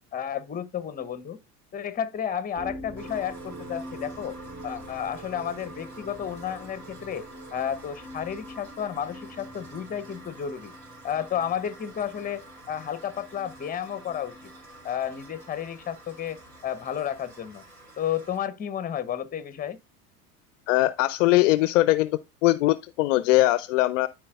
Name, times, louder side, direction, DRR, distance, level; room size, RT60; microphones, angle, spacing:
voice 1, 0.1-1.4 1.7-4.4 4.6-7.2 7.5-10.7 11.0-12.4 12.7-14.5 14.8-16.4 16.6-17.6 18.0-19.8, left 9 dB, 20° left, 0.8 m, -32 dB
sound 1, 2.6-17.4, equal, 5° right, 2.1 m, -45 dB
sound 2, 3.0-18.4, right 2 dB, 55° right, 3.7 m, -49 dB
voice 2, 20.7-24.1, left 17 dB, 55° left, 0.5 m, -21 dB
12.5 x 4.6 x 2.4 m
figure-of-eight pair, 80°, 47 cm